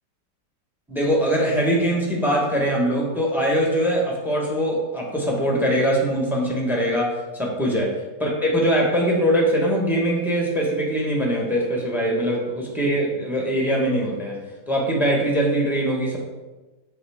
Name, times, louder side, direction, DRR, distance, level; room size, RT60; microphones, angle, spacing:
voice 1, 0.9-7.1 7.4-7.9 8.2-14.4 14.7-16.2, equal, ahead, -2 dB, 1.1 m, -22 dB
7.7 x 5.6 x 3.6 m, 1.2 s
omnidirectional pair, 1.9 m